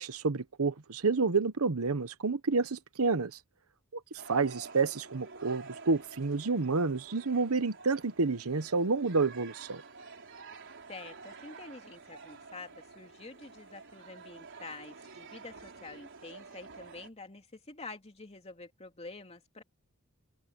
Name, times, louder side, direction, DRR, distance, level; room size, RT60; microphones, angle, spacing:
voice 1, 0.0-3.3 4.3-9.8, right 4 dB, 75° right, 1.0 m, -29 dB
sound 1, 4.2-17.1, right 4 dB, 60° right, 4.3 m, -50 dB
voice 2, 10.9-19.6, left 3 dB, 30° left, 2.9 m, -48 dB
open air
head